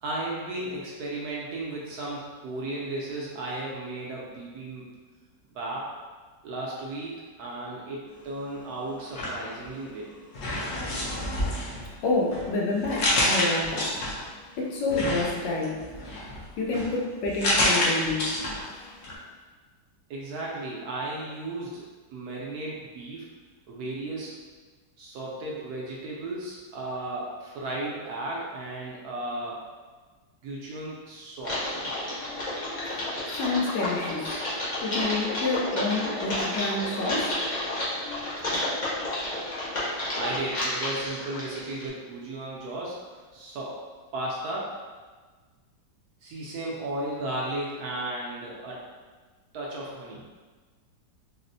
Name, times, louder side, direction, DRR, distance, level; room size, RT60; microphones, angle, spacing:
voice 1, 0.0-4.9 5.5-5.9 6.4-10.1 20.1-21.8 22.1-23.3 23.7-24.4 25.0-29.6 30.4-31.7 40.2-43.8 44.1-44.7 46.2-48.9 49.5-50.2, right 2 dB, 70° right, -4 dB, 1.0 m, -35 dB
sound 1, 9.0-10.0 10.3-14.4 14.9-18.8 19.0-19.1, left 1 dB, 65° left, 1.1 m, -29 dB
voice 2, 12.0-14.0 14.6-15.8 16.6-18.5 18.7-19.0 33.3-34.5 34.8-37.4, left 2 dB, 85° left, -2 dB, 1.3 m, -28 dB
Typing, 31.4-41.9, left 1 dB, 50° left, 0.5 m, -31 dB
4.2 x 2.0 x 2.6 m, 1.4 s
omnidirectional pair, 1.9 m